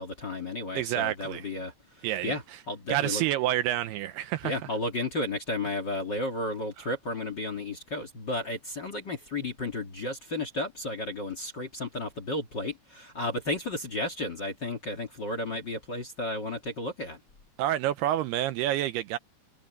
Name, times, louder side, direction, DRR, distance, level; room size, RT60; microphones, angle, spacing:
voice 1, 0.0-1.7 2.2-2.4 2.7-3.2 4.4-17.2, left 2 dB, 35° left, 1.9 m, -33 dB
voice 2, 0.8-1.5 2.0-2.6 2.9-4.6 6.8-6.9 17.6-19.2, right 13 dB, 80° right, 2.5 m, -28 dB
omnidirectional pair, 5.0 m